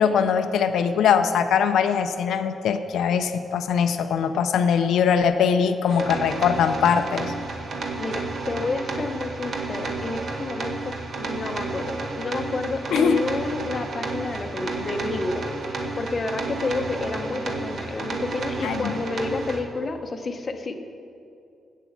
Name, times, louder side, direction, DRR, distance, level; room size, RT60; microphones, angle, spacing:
voice 1, 0.0-7.3 12.9-13.2 18.6-18.9, left 7 dB, 85° left, 8 dB, 0.5 m, -21 dB
sound 1, 5.9-19.6, right 3 dB, 45° right, 1.1 m, -31 dB
voice 2, 8.0-15.5 16.0-20.8, left 3 dB, 30° left, 5 dB, 0.7 m, -30 dB
8.2 x 8.0 x 7.3 m, 2.5 s
wide cardioid pair, 160°, 0 cm